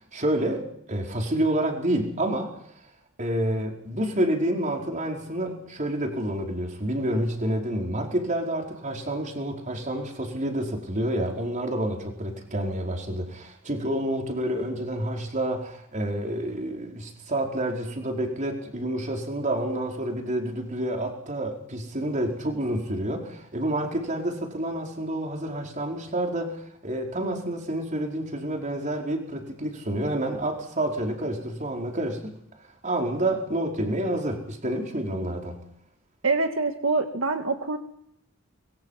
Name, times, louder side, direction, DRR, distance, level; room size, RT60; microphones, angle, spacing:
voice 1, 0.1-2.5 3.2-32.4 32.8-35.6, right 1 dB, 40° right, 1 dB, 4.9 m, -28 dB
voice 2, 36.2-37.8, right 3 dB, 70° right, 4 dB, 1.9 m, -25 dB
25.0 x 22.5 x 5.8 m, 0.72 s
head